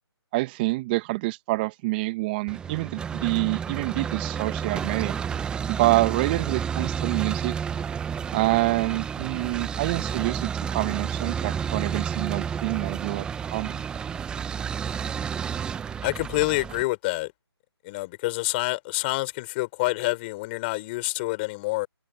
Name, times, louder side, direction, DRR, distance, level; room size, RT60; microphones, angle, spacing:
voice 1, 0.3-5.1 5.7-7.5 8.3-13.3 13.5-13.8, right 21 dB, 20° right, 1.4 m, -26 dB
sound 1, 2.5-16.8, right 7 dB, 5° right, 1.0 m, -31 dB
voice 2, 16.0-17.3 17.8-21.9, left 22 dB, 25° left, 3.9 m, -27 dB
figure-of-eight pair, 150°, 14 cm